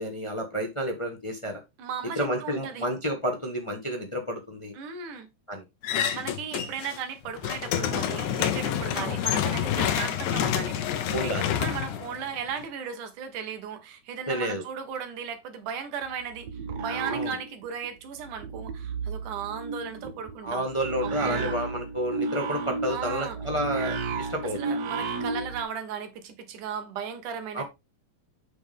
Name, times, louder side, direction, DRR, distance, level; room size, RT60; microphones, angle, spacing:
voice 1, 0.0-1.6 2.1-4.7 5.5-5.6 9.0-9.2 11.1-11.5 14.3-14.6 17.1-17.3 20.4-24.7 27.5-27.6, equal, 45° left, 0.4 m, -30 dB
voice 2, 1.8-2.9 4.7-5.3 6.1-16.5 16.8-20.6 21.0-21.5 22.9-23.4 24.5-27.6, right 7 dB, 90° right, 3.0 m, -36 dB
sound 1, 5.8-7.0 7.3-12.6, left 9 dB, 80° left, 2.4 m, -28 dB
sound 2, 16.0-17.9 18.2-25.6, right 4 dB, 65° right, 2.1 m, -33 dB
8.0 x 5.9 x 3.6 m
omnidirectional pair, 3.5 m